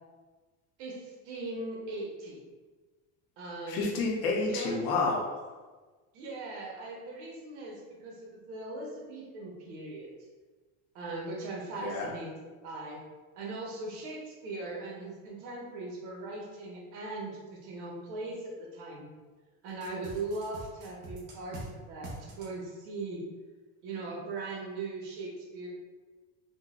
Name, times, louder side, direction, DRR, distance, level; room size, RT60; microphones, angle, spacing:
voice 1, 0.8-2.4 3.4-3.9 4.5-4.7 6.1-10.1 10.9-13.0 13.3-19.1 19.6-23.2 23.8-25.7, right 2 dB, 90° right, -2 dB, 1.0 m, -39 dB
voice 2, 3.7-5.5 11.8-12.1, left 3 dB, 50° left, -1 dB, 0.7 m, -30 dB
sound 1, 19.8-21.7 22.0-22.5, right 2 dB, 45° right, 0.7 m, -43 dB
3.8 x 2.2 x 2.4 m, 1.3 s
cardioid pair, 160°, 34 cm